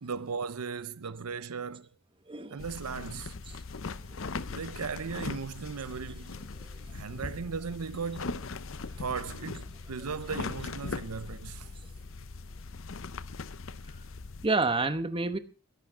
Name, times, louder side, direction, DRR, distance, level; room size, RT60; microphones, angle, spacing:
voice 1, 0.0-1.9 2.5-3.4 4.5-6.4 6.9-8.4 9.0-11.7, right 5 dB, 85° right, 0.6 m, -37 dB
voice 2, 2.3-2.7 3.5-3.6 4.1-4.2 4.5-4.6 5.7-5.8 6.3-6.8 9.0-9.1 9.5-9.7 14.4-15.4, right 3 dB, 25° right, 1.0 m, -31 dB
sound 1, 2.6-14.5, left 3 dB, 60° left, 0.7 m, -40 dB
21.5 x 11.5 x 3.6 m
head